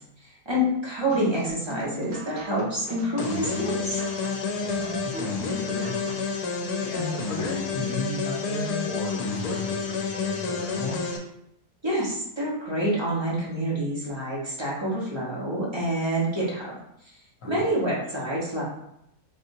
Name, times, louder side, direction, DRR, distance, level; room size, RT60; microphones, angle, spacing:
voice 1, 0.4-4.0 11.8-16.7 17.4-18.6, equal, 20° right, -6 dB, 1.2 m, -27 dB
sound 1, 1.1-6.4, right 1 dB, 65° right, 0.7 m, -39 dB
sound 2, 3.2-11.2, left 4 dB, 80° left, 1.2 m, -29 dB
voice 2, 4.5-6.2 6.8-11.0 17.4-17.6, left 2 dB, 60° left, -2 dB, 1.3 m, -34 dB
5.2 x 2.7 x 2.7 m, 0.78 s
omnidirectional pair, 1.6 m